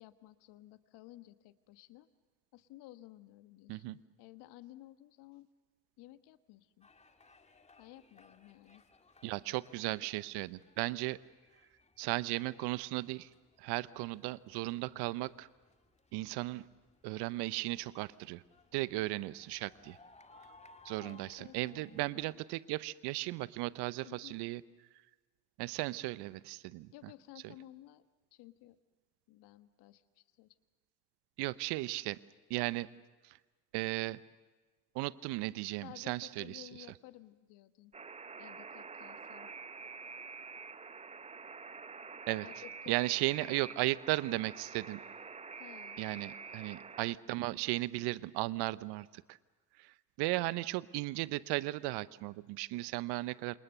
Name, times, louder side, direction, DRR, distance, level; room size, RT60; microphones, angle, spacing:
voice 1, 0.0-2.1 2.5-5.5 6.0-6.9 7.8-8.8 21.0-22.4 24.0-24.4 26.9-28.0 28.3-28.8 29.3-30.5 35.8-37.9 38.4-39.5 42.4-43.7 45.6-46.4, left 15 dB, 55° left, 11 dB, 1.5 m, -55 dB
sound 1, 6.8-22.3, left 3 dB, 15° left, 2.0 m, -63 dB
voice 2, 9.2-11.2 12.0-13.3 13.6-15.5 16.1-16.7 17.0-18.4 18.7-20.0 20.8-24.6 25.6-26.9 27.4-27.5 31.4-32.2 32.5-32.9 33.2-33.4 33.7-34.2 34.9-36.7 42.3-42.5 42.9-45.0 46.0-49.4 49.8-53.6, right 19 dB, 55° right, 18 dB, 0.9 m, -36 dB
Alarm, 37.9-47.1, right 5 dB, 15° right, 0.7 m, -47 dB
28.0 x 27.0 x 6.8 m, 1.3 s
hypercardioid pair, 70°, 48 cm